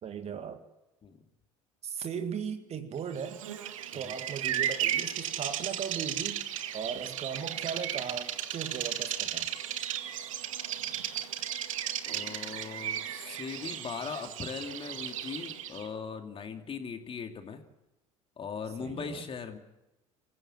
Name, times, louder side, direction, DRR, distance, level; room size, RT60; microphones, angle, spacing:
voice 1, 0.0-0.6 1.8-3.4 3.9-6.4 6.7-9.5 18.8-19.3, right 7 dB, 40° right, 9 dB, 1.9 m, -37 dB
Bird vocalization bird call bird song, 3.2-15.9, right 11 dB, 70° right, 1.3 m, -35 dB
voice 2, 12.1-17.6 18.4-19.6, left 5 dB, 30° left, 5 dB, 2.7 m, -39 dB
26.0 x 16.0 x 7.6 m, 0.95 s
figure-of-eight pair, 65°, 17 cm